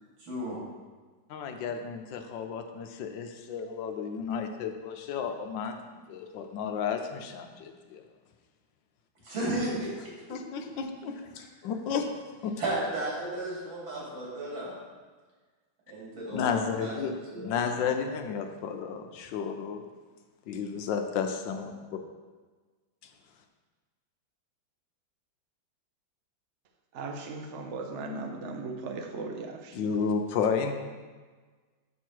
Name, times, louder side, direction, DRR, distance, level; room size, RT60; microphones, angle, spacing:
voice 1, 0.2-0.6 9.2-10.1 10.5-10.6 11.4-11.5 12.6-14.8 15.9-17.0 17.3-17.5, right 1 dB, 85° right, -6 dB, 3.5 m, -34 dB
voice 2, 1.3-8.0 10.3-12.6 16.3-19.8 20.5-22.0 29.7-30.7, left 6 dB, 75° left, 5 dB, 1.3 m, -32 dB
voice 3, 26.9-29.9, right 3 dB, 50° right, 3 dB, 0.8 m, -37 dB
7.1 x 6.4 x 4.6 m, 1.4 s
omnidirectional pair, 2.1 m